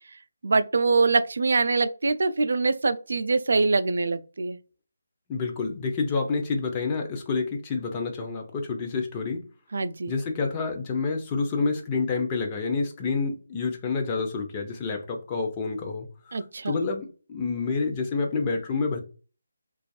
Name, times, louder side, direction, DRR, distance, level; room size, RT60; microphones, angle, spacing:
voice 1, 0.4-4.6 9.7-10.1 16.3-16.7, right 3 dB, 65° right, 0.3 m, -24 dB
voice 2, 5.3-9.4 10.1-16.4 16.7-19.0, left 4 dB, 20° left, 0.5 m, -28 dB
2.5 x 2.3 x 2.3 m
figure-of-eight pair, 165°, 0 cm